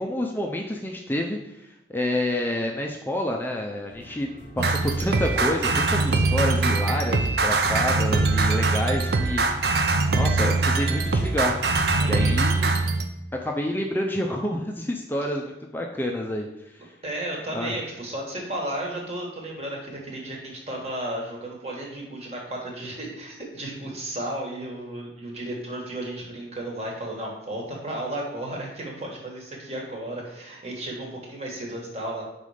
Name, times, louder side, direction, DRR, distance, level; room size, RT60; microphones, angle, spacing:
voice 1, 0.0-4.3 4.6-9.7 10.1-11.6 12.0-12.7 13.4-16.9 17.5-17.7, left 1 dB, 10° left, 1 dB, 0.4 m, -28 dB
sound 1, 3.9-12.4, right 1 dB, 85° right, 1.9 m, -42 dB
sound 2, 4.6-13.1, right 3 dB, 60° right, 0.5 m, -22 dB
voice 2, 12.0-12.4 15.2-15.3 17.0-32.2, right 1 dB, 35° right, -1 dB, 1.4 m, -34 dB
5.5 x 4.2 x 4.9 m, 0.88 s
head